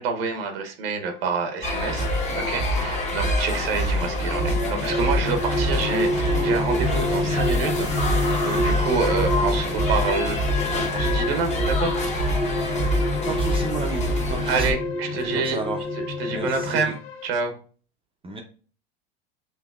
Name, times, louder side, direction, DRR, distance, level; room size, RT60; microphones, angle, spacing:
voice 1, 0.0-2.1 2.3-10.4 10.9-11.9 14.5-15.6 16.2-17.0 17.2-17.6, right 4 dB, 90° right, 5 dB, 0.9 m, -27 dB
sound 1, 0.9-17.3, left 7 dB, 80° left, 0.7 m, -39 dB
sound 2, 1.6-14.7, equal, 25° left, 1.1 m, -25 dB
sound 3, 4.1-16.8, left 1 dB, 60° left, 1.9 m, -28 dB
voice 2, 13.3-14.0 14.3-14.8 15.3-15.8 16.3-16.9 18.2-18.4, right 3 dB, 20° right, 2 dB, 0.6 m, -32 dB
5.5 x 2.7 x 2.3 m, 0.40 s
supercardioid pair, 105°, 29 cm